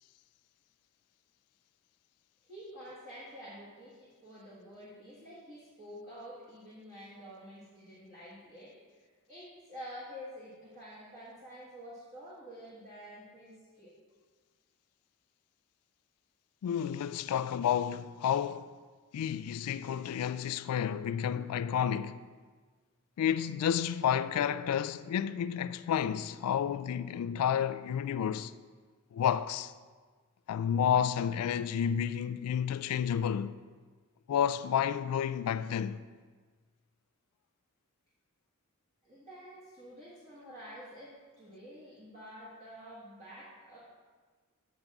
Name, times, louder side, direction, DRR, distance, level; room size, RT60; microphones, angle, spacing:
voice 1, 2.4-13.9 39.0-43.8, equal, 30° right, 1.4 m, -49 dB
voice 2, 16.6-18.7 19.1-22.2 23.2-28.5 29.1-29.7 30.5-33.5 34.3-36.0, left 8 dB, 80° left, 0.3 m, -30 dB
7.2 x 6.6 x 3.5 m
head